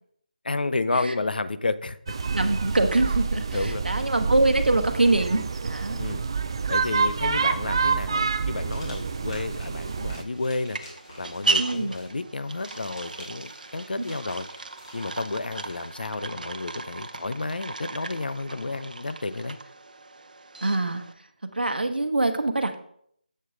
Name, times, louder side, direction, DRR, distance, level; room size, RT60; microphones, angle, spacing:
voice 1, 0.4-2.2 3.5-4.1 5.9-6.2 6.7-10.8 11.2-14.5 14.9-19.6, left 3 dB, 70° left, 14 dB, 0.6 m, -31 dB
sound 1, 2.1-10.2, right 5 dB, 30° right, 0.4 m, -27 dB
voice 2, 2.3-6.0 11.6-11.9 20.6-21.0 21.5-22.8, right 2 dB, 85° right, 7 dB, 1.0 m, -24 dB
sound 2, 8.4-15.9, left 1 dB, 30° left, 2.6 m, -50 dB
sound 3, 9.9-21.1, right 3 dB, 60° right, 0.7 m, -35 dB
7.8 x 6.1 x 3.8 m, 0.66 s
figure-of-eight pair, 165°, 5 cm